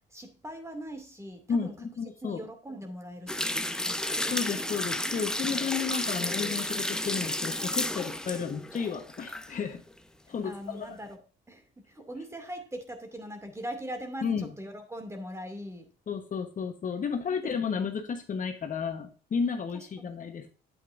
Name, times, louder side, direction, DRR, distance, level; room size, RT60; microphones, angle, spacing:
voice 1, 0.1-1.7 2.2-4.4 10.3-11.2 11.5-15.9 17.3-17.8 19.7-20.1, equal, 15° right, 6 dB, 2.4 m, -41 dB
voice 2, 1.5-2.4 4.3-9.8 10.3-11.0 14.2-14.5 16.1-20.5, left 6 dB, 45° left, 6 dB, 1.2 m, -32 dB
sound 1, 3.3-9.5 9.9-10.0, left 1 dB, 5° left, 0.9 m, -32 dB
9.0 x 8.4 x 2.6 m, 0.37 s
cardioid pair, 95°, 18 cm